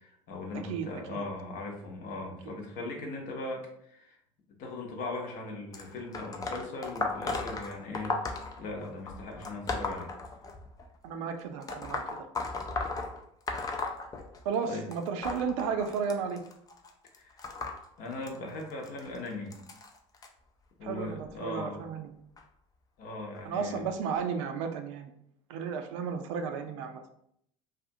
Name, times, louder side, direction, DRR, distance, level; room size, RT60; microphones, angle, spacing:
voice 1, 0.0-4.2 4.6-10.1 14.6-14.9 17.1-17.4 18.0-19.6 20.8-21.8 23.0-23.8, left 2 dB, 55° left, 1 dB, 0.7 m, -39 dB
voice 2, 0.7-1.2 2.5-2.6 11.0-12.3 14.4-16.4 20.8-22.1 23.4-25.1 25.5-27.0, right 6 dB, 70° right, 6 dB, 0.4 m, -33 dB
sound 1, 5.7-10.9 11.6-14.6 14.9-20.3 21.1-21.3 22.4-22.5 23.3-23.4 24.1-24.2, left 3 dB, 25° left, 0.4 m, -36 dB
2.5 x 2.3 x 2.6 m, 0.71 s
hypercardioid pair, 75°, 16 cm